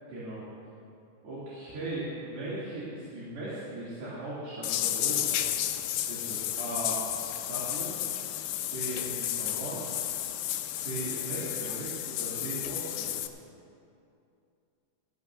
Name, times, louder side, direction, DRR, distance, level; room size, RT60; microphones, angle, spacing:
voice 1, 0.1-0.4 1.2-5.6 6.1-7.0 7.5-8.0 8.7-9.8 10.7-13.1, right 1 dB, 65° right, -10 dB, 4.6 m, -38 dB
sound 1, 4.6-13.3, left 12 dB, 80° left, 2.4 m, -32 dB
18.0 x 15.5 x 2.7 m, 2.6 s
omnidirectional pair, 4.6 m